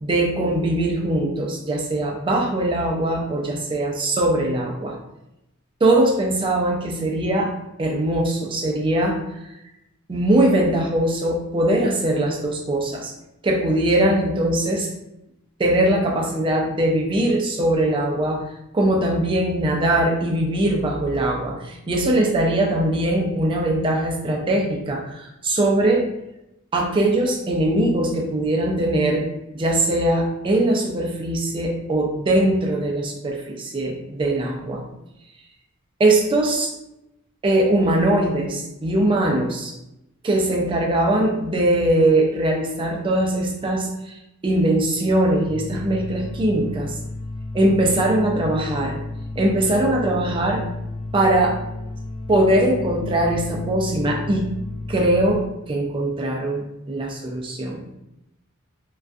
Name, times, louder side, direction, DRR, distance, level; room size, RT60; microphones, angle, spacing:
voice 1, 0.0-5.0 5.8-7.5 7.8-9.2 10.1-13.1 13.4-14.9 15.6-18.4 18.7-26.1 26.7-29.3 29.5-34.9 36.0-36.7 37.4-39.7 40.2-43.9 44.4-46.9 47.5-49.0 49.4-50.6 51.1-51.6 52.3-54.5 54.9-55.4 55.7-57.8, right 1 dB, 25° right, 0 dB, 0.3 m, -21 dB
sound 1, 45.4-55.3, left 2 dB, 70° left, 0.9 m, -32 dB
2.3 x 2.3 x 2.4 m, 0.89 s
head